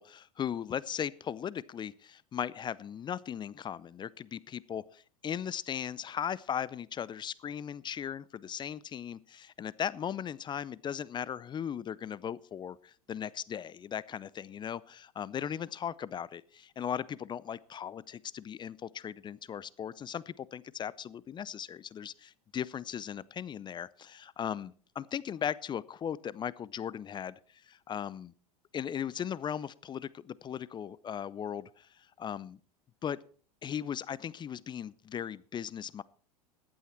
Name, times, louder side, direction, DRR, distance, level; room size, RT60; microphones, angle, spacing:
voice 1, 0.0-28.3 28.7-32.6 33.0-33.2 33.6-36.0, left 8 dB, 25° left, 22 dB, 0.5 m, -38 dB
15.0 x 11.5 x 4.4 m, 0.42 s
figure-of-eight pair, 85°, 19 cm